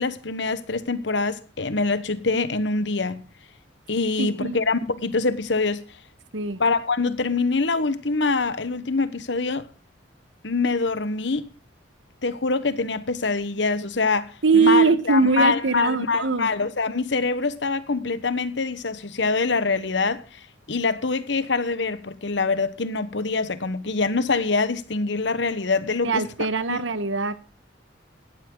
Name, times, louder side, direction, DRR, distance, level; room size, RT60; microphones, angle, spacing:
voice 1, 0.0-3.2 3.9-5.8 6.6-9.7 10.4-11.4 12.2-20.4 20.7-26.2 26.7-26.8, left 3 dB, 65° left, 1.1 m, -24 dB
voice 2, 4.2-4.6 6.3-6.6 14.4-16.5 26.0-27.4, right 4 dB, 85° right, 1.2 m, -21 dB
16.5 x 12.5 x 3.8 m
head